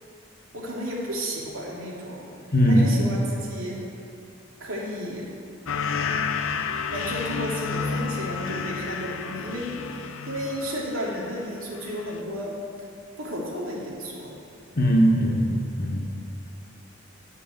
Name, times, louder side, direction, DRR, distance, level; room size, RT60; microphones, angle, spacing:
voice 1, 0.5-2.3 2.6-3.8 4.6-5.3 6.9-12.6 13.2-14.4, equal, 80° right, -4 dB, 2.7 m, -33 dB
voice 2, 2.5-2.9 14.7-16.0, equal, 50° left, 0 dB, 1.5 m, -20 dB
sound 1, 5.7-11.4 11.8-12.2, left 5 dB, 75° left, 0.6 m, -31 dB
12.0 x 5.4 x 8.1 m, 2.4 s
head